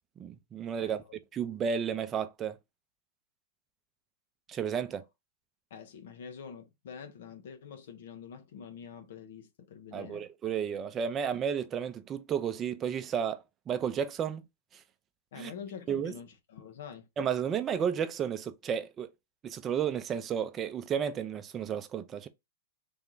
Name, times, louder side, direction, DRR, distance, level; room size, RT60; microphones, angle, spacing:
voice 1, 0.2-1.0 1.3-2.6 4.5-5.0 9.9-14.4 15.4-15.5 15.9-16.1 17.2-19.1 19.4-22.3, right 8 dB, 25° right, 0.5 m, -32 dB
voice 2, 0.8-1.2 5.7-10.2 15.3-17.1, left 7 dB, 70° left, 0.9 m, -46 dB
3.4 x 2.9 x 3.8 m
hypercardioid pair, 140°, 0 cm